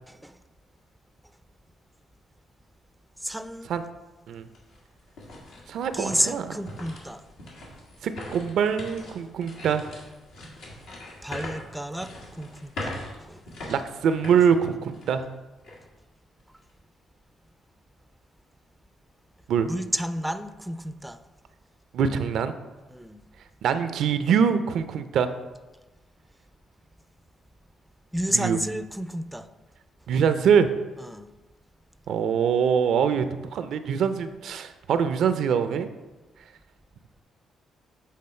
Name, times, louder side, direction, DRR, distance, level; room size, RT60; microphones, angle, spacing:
voice 1, 0.1-0.4 3.2-3.7 5.9-7.2 11.2-13.4 19.7-21.2 22.9-23.2 28.1-29.5 31.0-31.3, right 1 dB, 5° right, 0.4 m, -31 dB
sound 1, 3.7-3.8 4.3-15.3 15.6-15.8 16.4-16.7, left 1 dB, 85° left, 1.7 m, -41 dB
voice 2, 5.7-6.5 8.0-9.9 13.7-15.2 19.5-19.7 21.9-22.6 23.6-25.3 28.3-28.6 30.1-30.7 32.1-33.3 33.5-35.9, right 7 dB, 75° right, 0.4 m, -23 dB
7.5 x 3.7 x 4.2 m
cardioid pair, 90°, 0 cm